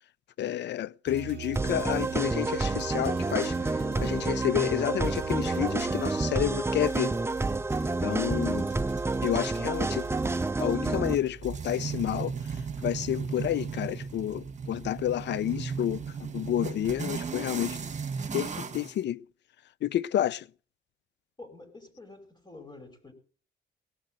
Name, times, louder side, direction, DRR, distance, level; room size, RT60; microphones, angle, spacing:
voice 1, 0.4-7.2 8.0-8.7 9.2-10.1 10.6-12.3 12.8-17.8 18.3-19.2 19.8-20.5, left 11 dB, 65° left, 0.6 m, -30 dB
sound 1, 1.1-6.5, right 12 dB, 60° right, 0.6 m, -42 dB
sound 2, 1.6-11.1, right 3 dB, 10° right, 0.7 m, -29 dB
sound 3, 6.8-19.0, right 6 dB, 35° right, 1.9 m, -37 dB
voice 2, 21.4-23.1, left 2 dB, 20° left, 5.3 m, -48 dB
18.0 x 6.6 x 7.7 m
cardioid pair, 90°, 20 cm